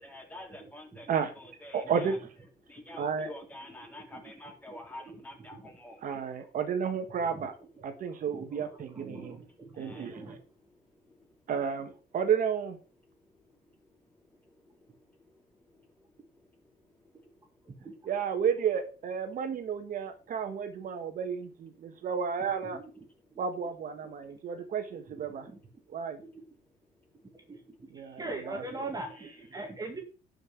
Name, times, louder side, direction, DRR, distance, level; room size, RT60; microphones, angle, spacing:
voice 1, 0.0-1.1 1.4-2.2 2.6-6.1 8.2-8.3 9.4-10.2 10.4-11.3 13.1-15.9 16.9-17.9 22.0-22.1 26.9-27.4 27.7-28.1 29.1-29.4, left 1 dB, 10° left, 1 dB, 3.8 m, -50 dB
voice 2, 1.7-2.2 3.0-3.3 6.0-7.5 7.8-9.4 9.8-10.2 11.5-12.8 18.0-22.8 23.4-25.5 25.9-26.2 27.9-28.6, right 7 dB, 55° right, 8 dB, 1.4 m, -32 dB
voice 3, 7.1-7.5 7.8-7.9 8.2-10.4 17.7-17.9 22.6-22.8 25.1-25.6 27.5-30.0, right 2 dB, 20° right, 3 dB, 2.0 m, -42 dB
11.0 x 5.5 x 5.9 m, 0.36 s
cardioid pair, 110°, 17 cm